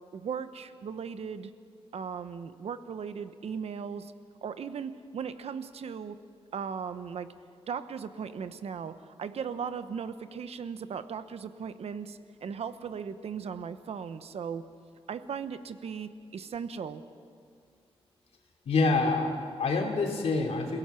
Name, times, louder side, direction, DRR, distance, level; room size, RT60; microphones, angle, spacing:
voice 1, 0.1-1.5 1.9-4.1 4.4-6.2 6.5-7.3 7.7-14.6 15.1-17.0, right 6 dB, 80° right, 11 dB, 0.9 m, -37 dB
voice 2, 18.6-20.8, left 3 dB, 85° left, 1 dB, 3.2 m, -27 dB
29.5 x 17.0 x 5.9 m, 2.2 s
wide cardioid pair, 140°, 10 cm